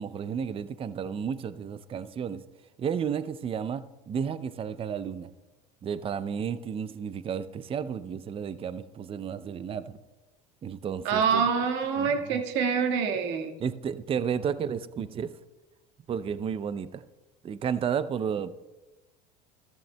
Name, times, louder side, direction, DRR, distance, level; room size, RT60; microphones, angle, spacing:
voice 1, 0.0-2.4 2.8-5.3 5.8-9.9 10.6-11.4 12.0-12.4 13.6-15.3 16.1-17.0 17.4-18.5, right 7 dB, 25° right, 15 dB, 0.5 m, -32 dB
voice 2, 11.0-13.6, right 6 dB, 60° right, 3 dB, 1.7 m, -26 dB
14.0 x 13.5 x 2.2 m, 1.1 s
hypercardioid pair, 90°, 21 cm